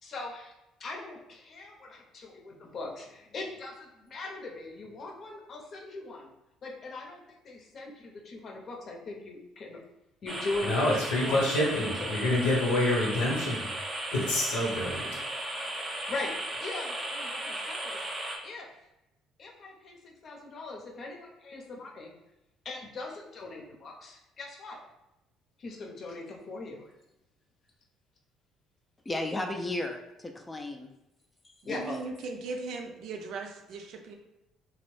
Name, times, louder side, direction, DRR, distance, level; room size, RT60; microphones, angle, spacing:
voice 1, 0.0-0.5 0.8-6.3 6.6-9.8 10.2-11.7 12.0-12.1 13.6-13.9 16.1-18.0 18.4-18.7 19.4-22.1 22.6-24.8 25.6-26.9 31.7-31.9, left 3 dB, 50° left, -1 dB, 0.7 m, -40 dB
sound 1, 10.3-18.4, right 1 dB, 25° right, 0.6 m, -36 dB
voice 2, 10.6-13.6 14.1-15.1, left 1 dB, 85° left, -3 dB, 0.9 m, -27 dB
voice 3, 29.1-30.9 31.7-32.0, left 2 dB, 20° left, 4 dB, 0.3 m, -34 dB
voice 4, 31.7-34.1, right 3 dB, 70° right, 3 dB, 0.4 m, -38 dB
2.9 x 2.0 x 3.0 m, 0.91 s
hypercardioid pair, 65°, 0 cm